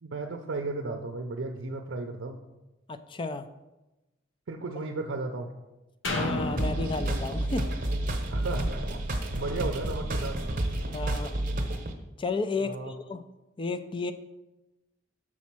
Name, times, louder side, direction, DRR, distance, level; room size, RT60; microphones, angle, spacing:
voice 1, 0.0-2.4 4.5-5.5 8.1-9.0 9.3-10.4 12.6-12.9, right 3 dB, 70° right, 4 dB, 0.5 m, -34 dB
voice 2, 2.9-3.5 6.1-7.7 10.9-11.4 12.2-13.2 13.6-14.1, left 3 dB, 25° left, 10 dB, 0.4 m, -32 dB
sound 1, 6.0-9.8 10.3-10.4, left 2 dB, 80° left, 0.9 m, -35 dB
sound 2, 6.6-11.9, right 1 dB, 45° right, 0.9 m, -30 dB
6.2 x 4.2 x 5.9 m, 1.0 s
head